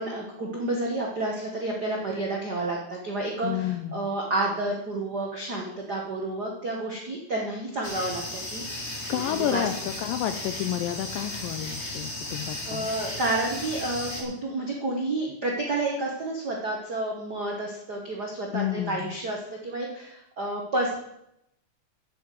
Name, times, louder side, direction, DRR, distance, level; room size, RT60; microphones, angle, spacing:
voice 1, 0.0-9.6 12.2-20.9, right 2 dB, 75° right, -1 dB, 0.9 m, -30 dB
voice 2, 3.4-4.1 9.1-9.7 10.0-12.9 18.5-19.2, left 12 dB, 80° left, 9 dB, 2.1 m, -30 dB
sound 1, 7.8-14.2, left 1 dB, 25° left, 1.5 m, -35 dB
9.7 x 7.6 x 7.6 m, 0.81 s
omnidirectional pair, 4.4 m